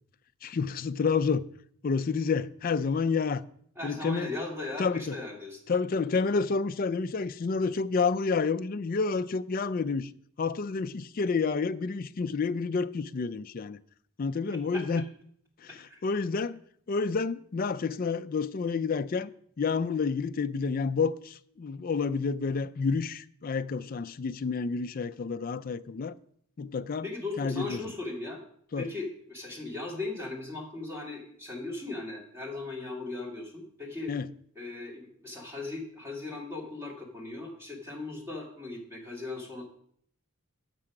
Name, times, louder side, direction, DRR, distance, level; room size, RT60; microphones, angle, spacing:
voice 1, 0.4-1.4 1.8-3.4 3.8-4.3 4.8-5.2 5.7-10.1 10.4-13.8 14.2-15.0 15.6-16.6 16.9-19.3 19.6-26.1 26.6-27.1 27.4-27.8 28.7-28.9 34.1-34.3, left 4 dB, 40° left, 0.3 m, -29 dB
voice 2, 3.8-5.6 14.7-14.8 15.9-16.0 27.0-28.4 28.8-34.1 34.6-39.7, left 2 dB, 10° right, 2.1 m, -38 dB
7.5 x 6.2 x 5.9 m
head